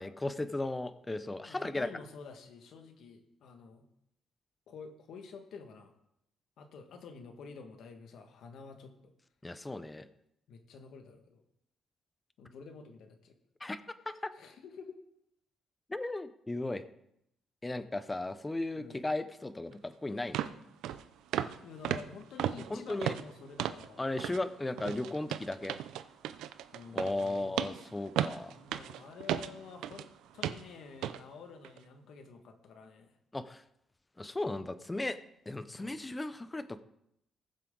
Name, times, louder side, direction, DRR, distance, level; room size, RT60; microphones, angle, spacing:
voice 1, 0.0-1.9 9.4-10.0 13.6-13.8 14.1-14.3 15.9-16.8 17.6-20.4 22.7-23.1 24.0-25.8 26.9-28.5 33.3-33.6 34.2-35.2 35.5-36.8, left 2 dB, 15° left, 12 dB, 0.8 m, -36 dB
voice 2, 1.4-3.9 4.7-5.9 6.6-8.9 10.5-11.4 12.4-13.4 14.3-15.0 18.7-19.1 21.6-24.0 24.7-25.0 26.7-27.7 28.6-30.1 30.3-33.1 35.8-36.0, left 5 dB, 75° left, 5 dB, 1.9 m, -49 dB
sound 1, 19.7-19.8 20.3-20.6 20.8-21.0 21.3-21.6 21.8-23.9 24.2-24.4 24.8-30.1 30.4-30.7 31.0-31.2 31.6-31.8, right 11 dB, 85° right, 0.6 m, -35 dB
19.5 x 7.5 x 4.0 m, 0.80 s
cardioid pair, 90°, 0 cm